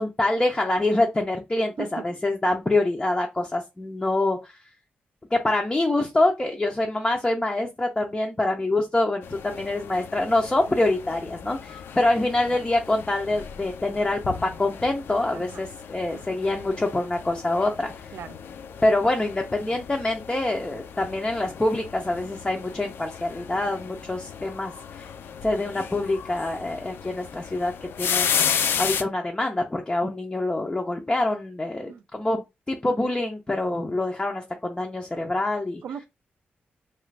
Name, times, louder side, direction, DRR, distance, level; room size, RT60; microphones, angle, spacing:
voice 1, 0.0-4.5 5.3-17.9 18.8-24.7 25.4-27.7 28.0-28.5 28.8-35.8, left 2 dB, 20° left, 0.5 m, -25 dB
sound 1, 9.2-29.0, left 7 dB, 80° left, 0.4 m, -34 dB
voice 2, 15.3-15.6 16.1-16.4 18.1-18.3 31.9-32.0 35.8-36.0, right 7 dB, 75° right, 0.4 m, -38 dB
2.9 x 2.4 x 3.2 m
wide cardioid pair, 105°, 4 cm